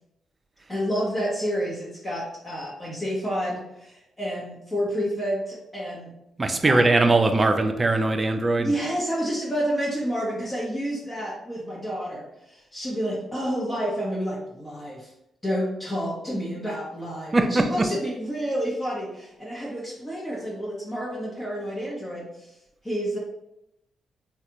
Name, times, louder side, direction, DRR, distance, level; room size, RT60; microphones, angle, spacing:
voice 1, 0.7-6.1 6.6-6.9 8.6-15.1 15.4-22.6 22.8-23.2, equal, 25° left, -5 dB, 0.9 m, -29 dB
voice 2, 6.4-8.7 17.3-17.9, right 2 dB, 35° right, 6 dB, 0.4 m, -21 dB
3.3 x 2.4 x 2.9 m, 0.84 s
hypercardioid pair, 45°, 0 cm